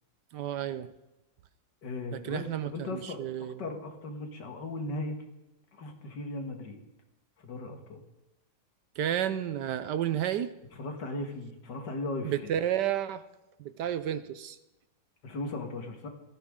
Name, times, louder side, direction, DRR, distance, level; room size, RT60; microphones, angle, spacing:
voice 1, 0.3-0.9 2.1-3.5 9.0-10.5 12.2-13.2 13.6-14.6, right 10 dB, 70° right, 13 dB, 1.2 m, -31 dB
voice 2, 1.8-5.2 5.7-6.8 7.4-8.0 10.7-12.3 15.2-16.1, left 2 dB, 65° left, 5 dB, 2.3 m, -37 dB
18.0 x 14.5 x 3.8 m, 0.99 s
omnidirectional pair, 2.0 m